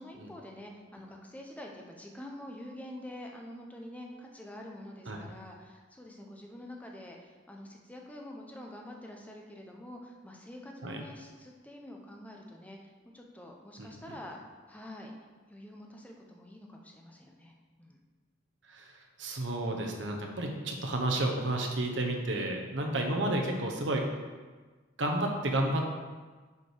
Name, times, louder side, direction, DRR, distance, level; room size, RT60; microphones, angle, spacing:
voice 1, 0.0-14.4 14.7-15.1 15.5-18.0, left 1 dB, 10° left, 0 dB, 0.8 m, -47 dB
voice 2, 19.2-24.1 25.0-25.9, right 1 dB, 75° right, 1 dB, 1.1 m, -31 dB
7.2 x 5.1 x 4.7 m, 1.4 s
head